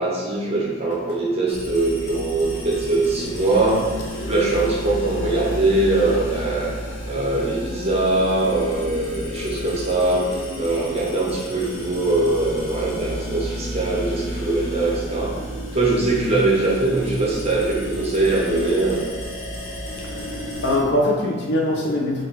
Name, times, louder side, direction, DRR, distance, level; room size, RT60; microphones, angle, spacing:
voice 1, 0.0-3.8 4.1-6.7 7.1-15.4 15.7-19.0, right 2 dB, 30° right, -4 dB, 0.8 m, -22 dB
sound 1, 1.5-20.8, equal, 90° left, 0.9 m, -31 dB
voice 2, 20.6-22.2, left 1 dB, 55° left, -1 dB, 0.7 m, -22 dB
4.5 x 2.5 x 3.7 m, 1.4 s
head